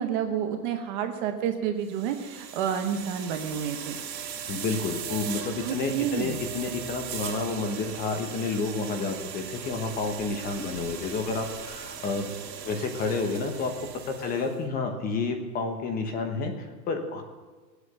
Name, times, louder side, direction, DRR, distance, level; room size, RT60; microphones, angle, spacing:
voice 1, 0.0-4.0 5.6-6.4, right 8 dB, 30° right, 6 dB, 0.9 m, -29 dB
sound 1, 1.8-14.6, right 8 dB, 80° right, 2.5 m, -39 dB
voice 2, 4.5-12.3 12.6-13.7 14.1-17.2, left 4 dB, 20° left, 5 dB, 1.2 m, -30 dB
18.0 x 8.2 x 6.8 m, 1.4 s
supercardioid pair, 160°, 49 cm